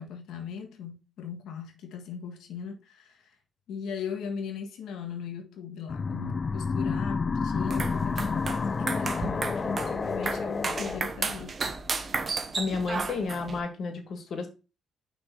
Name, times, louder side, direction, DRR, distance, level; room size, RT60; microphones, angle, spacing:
voice 1, 0.0-3.4 3.7-11.5, left 6 dB, 80° left, 1.5 m, -38 dB
sound 1, 5.9-11.0, left 4 dB, 35° left, 0.3 m, -29 dB
sound 2, 7.6-13.6, right 4 dB, 40° right, 1.1 m, -33 dB
voice 2, 12.6-14.5, left 4 dB, 55° left, 2.0 m, -31 dB
6.0 x 3.9 x 5.6 m
cardioid pair, 90°, 0 cm